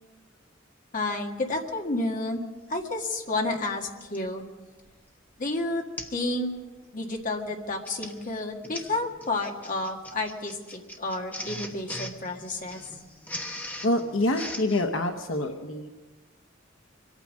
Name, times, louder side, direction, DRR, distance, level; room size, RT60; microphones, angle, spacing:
voice 1, 0.9-2.4 2.7-4.5 5.4-5.9 6.1-6.5 6.9-12.8, left 2 dB, 40° left, 1 dB, 1.8 m, -30 dB
Printer, 4.0-4.3 4.9-5.1 5.4-5.5 6.0-6.2 6.6-6.8 7.6-14.9, left 1 dB, 10° left, 1.1 m, -40 dB
voice 2, 13.8-16.0, left 1 dB, 75° left, 5 dB, 1.0 m, -26 dB
24.5 x 9.0 x 6.3 m, 1.2 s
head